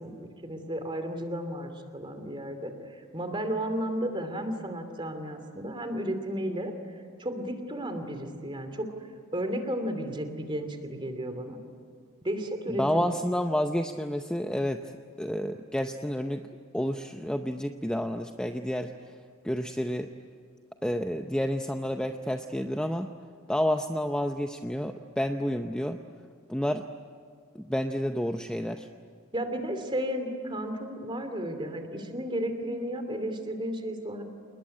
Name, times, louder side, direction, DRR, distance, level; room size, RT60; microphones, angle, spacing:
voice 1, 0.0-2.7 3.1-6.7 7.2-8.9 9.3-11.6 12.2-13.1 29.3-34.2, equal, 20° right, 7 dB, 2.8 m, -33 dB
voice 2, 12.7-14.9 15.2-16.4 16.7-18.9 19.4-20.1 20.8-23.1 23.5-26.0 26.5-26.8 27.5-28.9, equal, 5° left, 6 dB, 0.6 m, -30 dB
28.0 x 20.5 x 9.8 m, 2.1 s
head